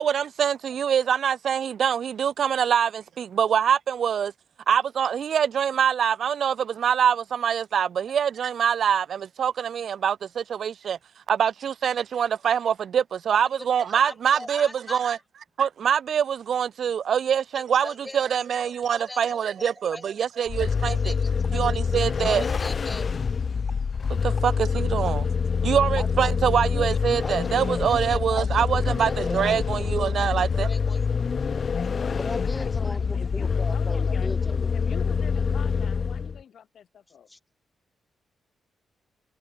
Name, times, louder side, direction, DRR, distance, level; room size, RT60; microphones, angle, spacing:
voice 1, 0.0-4.3 4.7-11.0 11.3-15.2 15.6-21.1 21.5-22.4 24.2-25.3 25.6-30.7, right 8 dB, 65° right, 0.4 m, -24 dB
voice 2, 13.9-15.0 17.5-18.2 18.6-21.6 22.2-23.1 26.0-26.1 26.7-31.0 32.1-34.7 37.3-37.4, left 1 dB, 15° left, 2.4 m, -39 dB
Vehicle, 20.5-36.4, left 5 dB, 50° left, 0.9 m, -26 dB
voice 3, 31.7-34.4 34.7-37.3, left 8 dB, 70° left, 2.3 m, -46 dB
cardioid pair, 80°, 0 cm